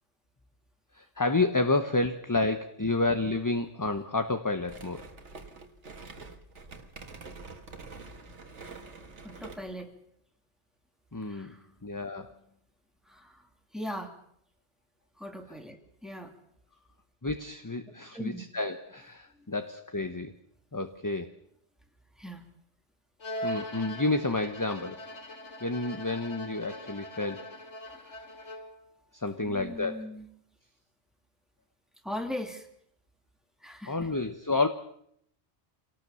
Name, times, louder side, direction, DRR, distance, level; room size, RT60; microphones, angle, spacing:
voice 1, 0.9-5.0 11.1-11.5 11.8-12.3 17.2-20.3 20.7-21.3 23.4-25.0 25.6-27.5 28.0-28.2 29.1-30.0 33.9-34.7, left 2 dB, 20° left, 8 dB, 1.0 m, -30 dB
sound 1, 4.7-9.8, right 3 dB, 80° right, 2.1 m, -46 dB
voice 2, 9.2-10.0 11.2-11.7 13.0-14.2 15.2-16.3 18.1-18.4 19.3-19.5 22.2-22.5 27.9-28.0 29.4-30.3 32.0-32.7 33.6-34.1, left 1 dB, ahead, 4 dB, 2.8 m, -40 dB
Bowed string instrument, 23.2-28.9, equal, 80° left, 2.5 m, -41 dB
26.5 x 18.5 x 7.0 m, 0.71 s
omnidirectional pair, 1.2 m